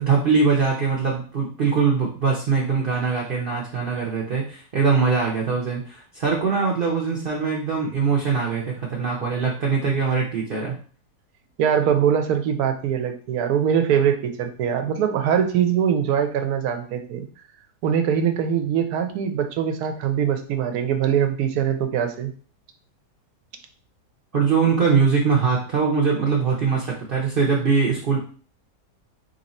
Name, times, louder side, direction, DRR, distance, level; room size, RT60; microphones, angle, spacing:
voice 1, 0.0-10.8 24.3-28.2, right 5 dB, 50° right, -3 dB, 0.7 m, -22 dB
voice 2, 11.6-17.2 17.8-22.3, right 8 dB, 70° right, 7 dB, 1.0 m, -22 dB
3.1 x 2.6 x 4.1 m, 0.41 s
omnidirectional pair, 1.8 m